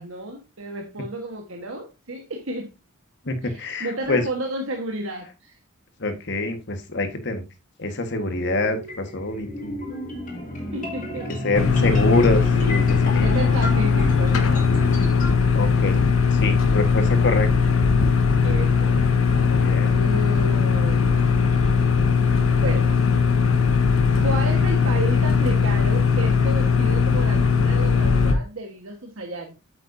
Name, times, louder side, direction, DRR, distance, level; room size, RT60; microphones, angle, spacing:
voice 1, 0.0-2.7 3.4-5.6 10.7-11.5 12.2-12.8 13.2-15.0 18.4-19.4 19.9-21.1 22.6-22.9 24.2-29.5, right 2 dB, 70° right, 1.4 m, -32 dB
voice 2, 3.2-4.2 6.0-7.4 7.8-9.8 11.4-13.5 15.5-16.0 16.3-17.5 19.4-19.9, left 2 dB, 55° left, 1.5 m, -25 dB
sound 1, 8.2-15.3, left 1 dB, 40° left, 3.1 m, -30 dB
sound 2, 11.5-28.3, left 5 dB, 75° left, 1.2 m, -19 dB
8.4 x 7.7 x 2.7 m
head